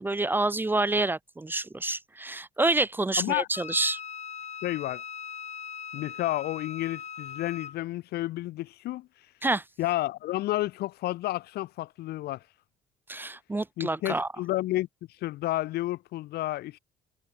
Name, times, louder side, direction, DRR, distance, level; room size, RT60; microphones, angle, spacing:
voice 1, 0.0-4.0 9.4-9.6 13.1-14.3, right 2 dB, 10° right, 0.6 m, -27 dB
voice 2, 3.2-3.5 4.6-5.0 5.9-9.1 9.8-12.4 13.8-14.9 15.2-16.8, left 16 dB, 70° left, 0.7 m, -31 dB
Wind instrument woodwind instrument, 3.5-7.8, left 7 dB, 40° left, 5.9 m, -40 dB
cardioid pair, 110°, 17 cm